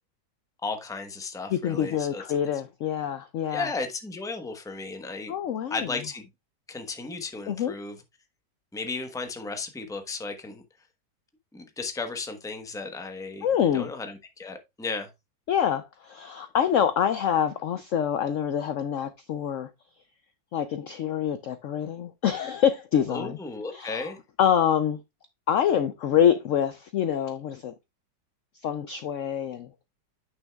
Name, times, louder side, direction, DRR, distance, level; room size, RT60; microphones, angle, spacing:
voice 1, 0.6-2.2 3.5-5.3 5.7-6.3 6.7-8.0 8.7-10.6 11.5-13.5 13.7-15.1 23.1-24.2, left 3 dB, 5° left, 0.6 m, -34 dB
voice 2, 1.5-3.7 5.3-5.9 7.5-7.7 13.4-13.9 15.5-19.7 20.5-23.4 23.7-24.1 24.4-25.0 25.5-27.7 28.6-29.7, left 9 dB, 85° left, 0.6 m, -26 dB
9.1 x 6.2 x 2.3 m
omnidirectional pair, 1.9 m